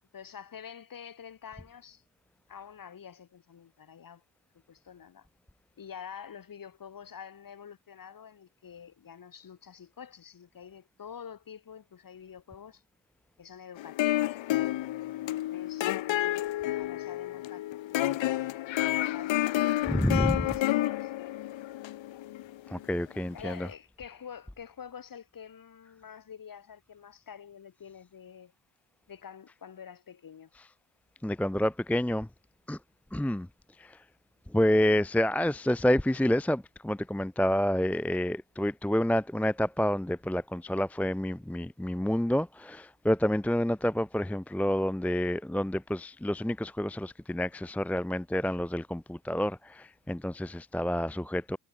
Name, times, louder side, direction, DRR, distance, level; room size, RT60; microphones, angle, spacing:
voice 1, 0.1-2.0 2.5-4.2 4.7-5.3 5.8-12.8 13.4-14.4 15.2-15.9 16.8-17.7 20.5-21.1 23.3-28.5 29.1-30.5, left 7 dB, 45° left, 7.8 m, -47 dB
sound 1, 13.8-23.0, left 14 dB, 70° left, 1.3 m, -30 dB
voice 2, 19.9-20.5 22.7-23.7 30.5-30.7 31.2-32.3 32.7-32.8 33.1-33.5 33.8-34.0 34.5-51.6, left 1 dB, 5° left, 0.8 m, -28 dB
cardioid pair, 140°, 47 cm